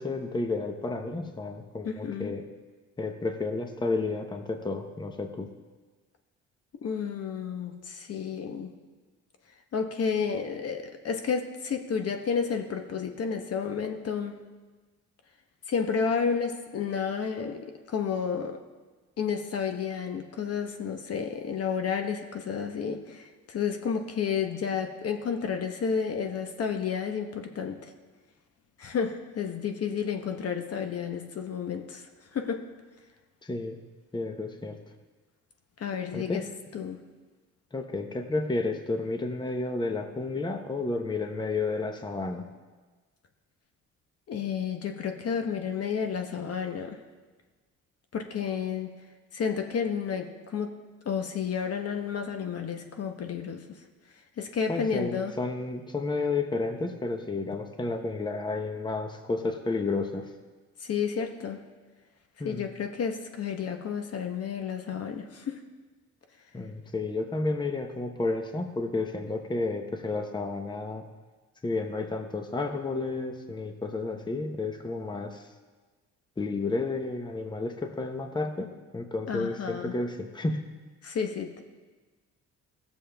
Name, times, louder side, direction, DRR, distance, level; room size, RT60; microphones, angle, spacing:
voice 1, 0.0-2.4 3.0-5.5 33.4-33.8 34.1-34.8 36.1-36.4 37.7-42.4 54.7-60.3 62.4-62.6 66.5-71.0 71.6-75.4 76.4-80.6, left 3 dB, 15° left, 5 dB, 0.9 m, -31 dB
voice 2, 1.8-2.3 6.8-8.7 9.7-14.4 15.7-18.6 19.2-27.9 28.8-32.0 32.3-32.7 35.8-36.4 36.7-37.0 44.3-47.0 48.1-48.9 49.3-50.7 51.0-53.8 54.4-55.3 60.8-61.6 62.4-65.6 79.3-79.9 81.0-81.6, left 6 dB, 55° left, 5 dB, 1.0 m, -31 dB
16.5 x 7.2 x 3.4 m, 1.3 s
cardioid pair, 90°, 30 cm